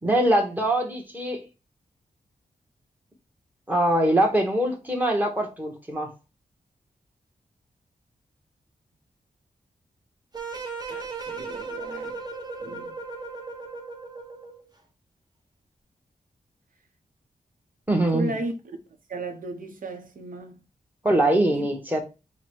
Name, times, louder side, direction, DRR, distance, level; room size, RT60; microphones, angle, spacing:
voice 1, 0.0-1.4 3.7-6.1 17.9-18.3 21.0-22.0, right 1 dB, 10° right, 1.1 m, -23 dB
sound 1, 10.3-14.7, right 4 dB, 30° right, 0.8 m, -36 dB
voice 2, 10.5-12.1 12.6-13.0 18.1-18.5 19.1-20.7 21.5-21.7, right 1 dB, 70° right, 0.9 m, -35 dB
4.7 x 2.2 x 4.5 m
wide cardioid pair, 120°, 15 cm